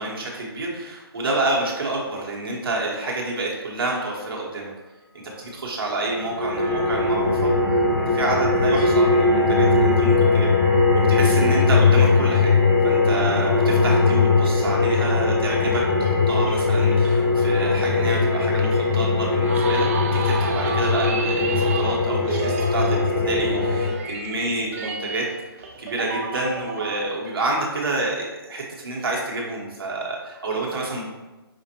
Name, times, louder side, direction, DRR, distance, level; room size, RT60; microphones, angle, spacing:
voice 1, 0.0-4.7 5.1-7.5 8.1-10.5 10.9-12.5 12.8-25.3 25.6-31.1, right 2 dB, 60° right, -3 dB, 1.2 m, -28 dB
sound 1, 6.0-23.9, left 3 dB, 25° left, 0.9 m, -20 dB
sound 2, 16.0-27.1, right 5 dB, 35° right, 0.4 m, -32 dB
5.1 x 2.5 x 2.9 m, 1.1 s
figure-of-eight pair, 145°, 13 cm